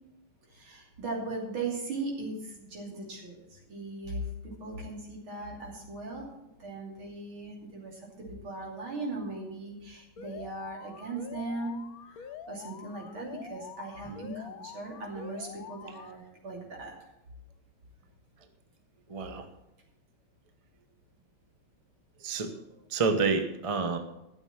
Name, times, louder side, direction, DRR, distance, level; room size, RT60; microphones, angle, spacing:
voice 1, 0.5-6.3 6.6-17.1, right 2 dB, 65° right, -1 dB, 3.6 m, -38 dB
Alarm, 10.2-16.2, left 8 dB, 75° left, 0.8 m, -46 dB
voice 2, 19.1-19.5 22.2-22.5 22.9-24.0, right 4 dB, 40° right, 7 dB, 0.4 m, -29 dB
13.0 x 7.1 x 7.2 m, 0.91 s
omnidirectional pair, 2.4 m